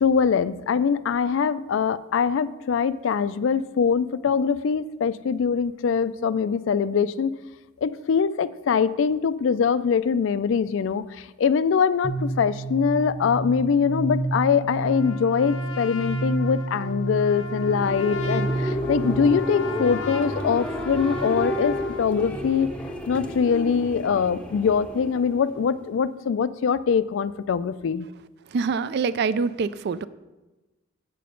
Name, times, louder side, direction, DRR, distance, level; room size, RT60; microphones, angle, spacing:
voice 1, 0.0-7.4 7.8-22.7 23.1-28.1, left 6 dB, 70° left, 16 dB, 0.3 m, -23 dB
sound 1, 12.0-19.6, right 2 dB, 35° right, 0.8 m, -30 dB
Trumpet, 14.9-22.1, left 4 dB, 85° left, 0.8 m, -37 dB
sound 2, 17.4-26.0, equal, 5° left, 0.6 m, -32 dB
voice 2, 28.5-30.1, right 5 dB, 55° right, 16 dB, 0.3 m, -25 dB
7.6 x 6.9 x 5.1 m, 1.1 s
head